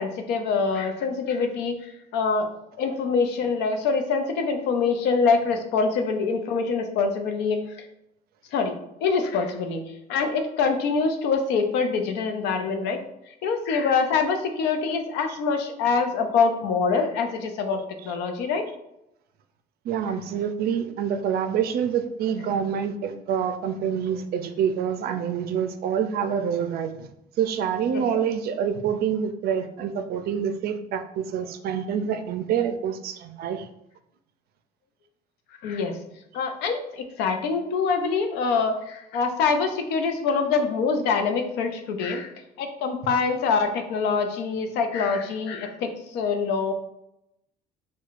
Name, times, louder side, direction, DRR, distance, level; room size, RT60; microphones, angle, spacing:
voice 1, 0.0-2.5 2.8-7.9 8.5-8.7 9.0-9.8 10.1-13.0 13.3-18.6 27.9-28.2 35.6-36.0 36.3-42.3 42.6-46.7, left 5 dB, 90° left, 6 dB, 0.5 m, -25 dB
voice 2, 19.8-27.1 27.4-33.7, right 8 dB, 65° right, 9 dB, 0.4 m, -27 dB
4.5 x 2.2 x 2.4 m, 0.84 s
cardioid pair, 110°, 17 cm